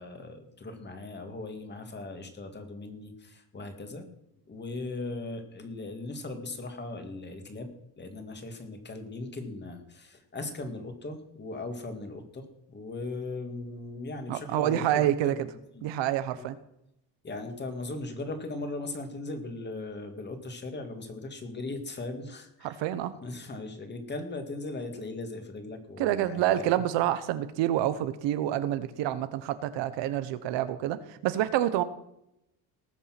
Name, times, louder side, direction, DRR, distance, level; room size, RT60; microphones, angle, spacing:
voice 1, 0.0-4.1 4.5-7.7 8.0-15.5 15.7-15.8 16.3-16.4 17.2-22.8 23.2-26.8, left 2 dB, 25° left, 6 dB, 2.2 m, -38 dB
voice 2, 14.3-15.3 15.8-16.6 22.6-23.1 26.0-31.8, right 12 dB, 85° right, 12 dB, 1.2 m, -28 dB
19.0 x 7.2 x 6.1 m, 0.80 s
cardioid pair, 150°, 43 cm